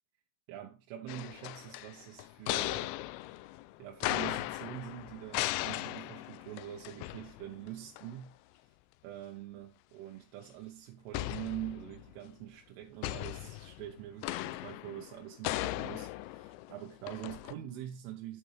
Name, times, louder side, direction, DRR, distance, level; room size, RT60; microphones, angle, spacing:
voice 1, 0.5-3.0 3.8-8.7 9.0-18.4, right 12 dB, 80° right, 3.2 m, -44 dB
sound 1, 1.1-7.7 8.0-8.1 11.1-12.2 13.0-17.5, left 18 dB, 85° left, 3.2 m, -38 dB
9.4 x 8.6 x 3.3 m
omnidirectional pair, 5.9 m